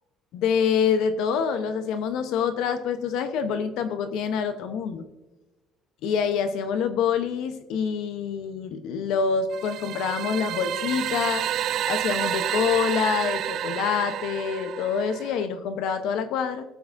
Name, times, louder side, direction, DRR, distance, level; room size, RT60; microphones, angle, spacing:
voice 1, 0.3-5.1 6.0-11.5 11.9-16.6, left 7 dB, 70° left, 9 dB, 0.8 m, -26 dB
sound 1, 9.5-15.4, right 11 dB, 55° right, 0.4 m, -29 dB
19.0 x 8.3 x 2.6 m, 1.1 s
cardioid pair, 150°, 0 cm